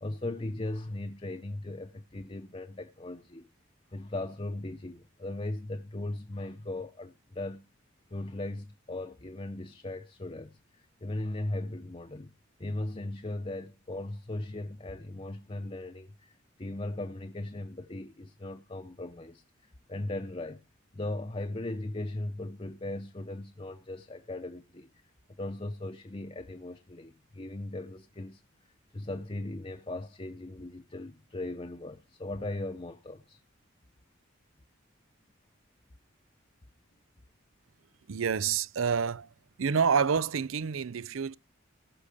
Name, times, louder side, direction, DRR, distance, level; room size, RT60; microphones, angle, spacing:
voice 1, 0.0-3.5 3.9-7.7 8.1-12.3 12.6-19.4 19.9-20.6 20.9-24.9 25.4-28.4 28.9-33.4, left 2 dB, 30° left, 0.8 m, -38 dB
voice 2, 38.1-39.3 39.6-41.4, right 6 dB, 85° right, 0.5 m, -28 dB
18.5 x 6.8 x 5.1 m
head